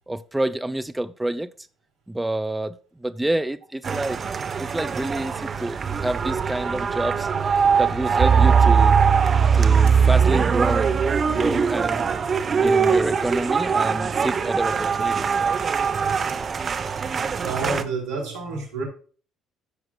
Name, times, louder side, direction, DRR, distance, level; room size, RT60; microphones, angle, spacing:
voice 1, 0.1-1.5 2.1-4.2 4.6-7.3 7.8-9.0 9.5-11.0 11.3-12.1 12.6-15.3, right 1 dB, 10° right, 0.7 m, -28 dB
sound 1, 3.8-17.8, right 6 dB, 45° right, 1.0 m, -21 dB
voice 2, 17.4-18.8, right 3 dB, 75° right, 3.4 m, -29 dB
13.5 x 6.4 x 2.4 m
hypercardioid pair, 55°, 0 cm